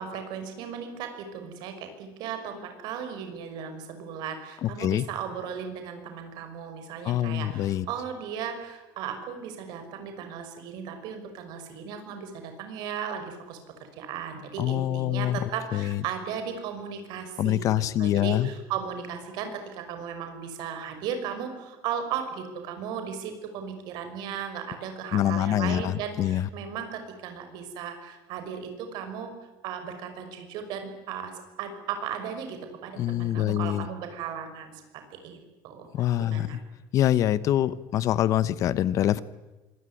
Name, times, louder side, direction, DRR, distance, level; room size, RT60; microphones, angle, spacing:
voice 1, 0.0-29.3 29.6-31.3 31.6-34.8 35.1-35.4 35.6-36.6, right 7 dB, 60° right, 7 dB, 6.0 m, -36 dB
voice 2, 4.6-5.1 7.0-7.9 14.6-15.4 15.7-16.0 17.4-18.5 25.1-26.5 33.0-33.9 35.9-36.5 36.9-39.2, left 12 dB, 40° left, 17 dB, 0.9 m, -25 dB
25.5 x 22.0 x 9.9 m, 1.1 s
cardioid pair, 175°, 8 cm